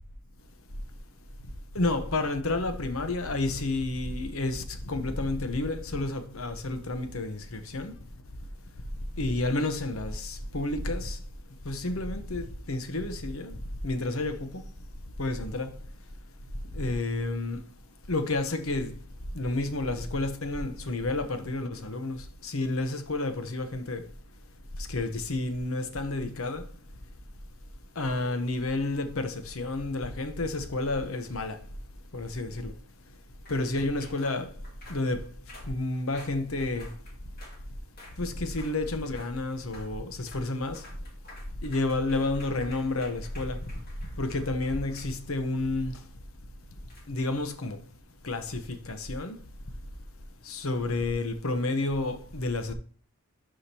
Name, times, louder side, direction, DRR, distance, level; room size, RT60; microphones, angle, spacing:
voice 1, 1.7-7.9 9.2-11.2 11.6-13.6 13.8-14.6 15.2-15.8 16.7-17.7 18.1-19.0 19.3-24.0 24.9-26.6 28.0-31.6 32.1-32.7 33.5-34.5 34.9-35.3 35.7-36.9 38.2-40.8 41.6-43.6 44.2-46.0 47.1-47.8 48.2-49.4 50.4-52.7, left 2 dB, 70° left, 1.0 m, -30 dB
sound 1, 28.0-28.8 30.9-31.8 33.5-37.6 38.0-38.2 38.5-38.8 39.0-39.3 39.6-39.9 40.2-40.5 40.7-45.5 46.9-47.0, left 2 dB, 45° left, 2.5 m, -51 dB
11.5 x 5.0 x 2.9 m
head